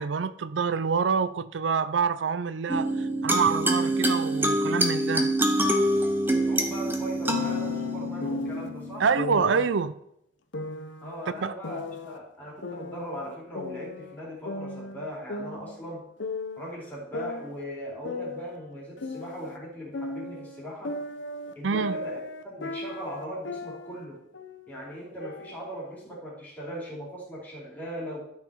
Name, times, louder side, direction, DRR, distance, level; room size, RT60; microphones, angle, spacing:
voice 1, 0.0-5.3 9.0-9.9 11.4-11.5 21.6-22.0, right 5 dB, 80° right, 0.5 m, -26 dB
sound 1, 2.7-9.7, right 1 dB, 10° right, 1.2 m, -26 dB
voice 2, 6.3-9.1 11.0-16.1 16.6-21.0 21.6-24.3 24.7-28.3, equal, 10° left, 4.2 m, -39 dB
sound 2, 7.2-8.7 9.2-9.7 10.5-12.2 12.6-14.2 14.5-16.7 17.1-19.6 19.9-24.0 24.3-24.7 25.2-26.2, left 2 dB, 85° left, 0.9 m, -36 dB
13.0 x 5.8 x 4.6 m
head